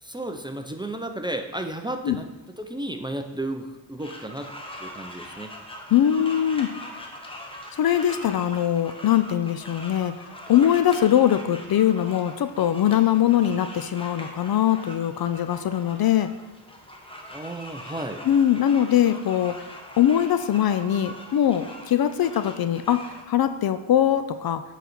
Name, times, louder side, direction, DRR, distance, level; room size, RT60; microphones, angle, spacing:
voice 1, 0.0-2.3 2.6-4.5 4.8-5.5 17.3-18.2, right 1 dB, 10° right, 5 dB, 0.5 m, -33 dB
sound 1, 4.0-23.2, left 1 dB, 10° left, 1.2 m, -42 dB
voice 2, 5.9-6.7 7.7-10.1 10.5-16.3 18.2-19.6 20.0-24.6, left 10 dB, 50° left, 11 dB, 0.5 m, -22 dB
8.2 x 4.1 x 5.9 m, 1.1 s
cardioid pair, 90°, 47 cm